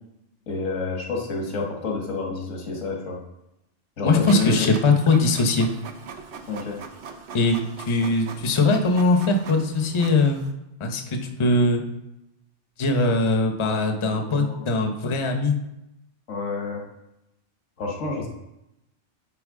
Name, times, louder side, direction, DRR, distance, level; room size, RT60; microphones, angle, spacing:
voice 1, 0.5-3.2 4.0-4.7 6.5-6.8 13.6-13.7 14.1-14.6 16.3-16.8 17.8-18.3, left 4 dB, 85° left, 0 dB, 1.6 m, -29 dB
voice 2, 4.0-5.7 7.3-10.4 10.8-11.8 12.8-15.6, left 2 dB, 30° left, 4 dB, 0.7 m, -21 dB
Printer, 4.3-10.5, right 5 dB, 70° right, 1.0 m, -40 dB
9.4 x 4.4 x 3.6 m, 0.89 s
omnidirectional pair, 1.2 m